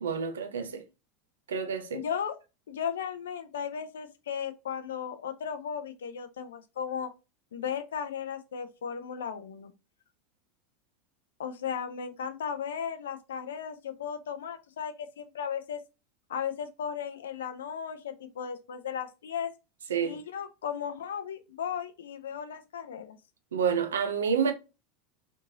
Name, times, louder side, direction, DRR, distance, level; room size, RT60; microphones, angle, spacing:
voice 1, 0.0-0.7 1.5-2.0 19.9-20.2 23.5-24.5, right 6 dB, 80° right, 0.5 m, -28 dB
voice 2, 1.9-2.4 2.7-7.1 7.5-9.7 11.4-15.8 16.3-19.5 20.0-23.2, left 7 dB, 80° left, 0.4 m, -36 dB
3.0 x 2.6 x 2.6 m
hypercardioid pair, 85°, 0 cm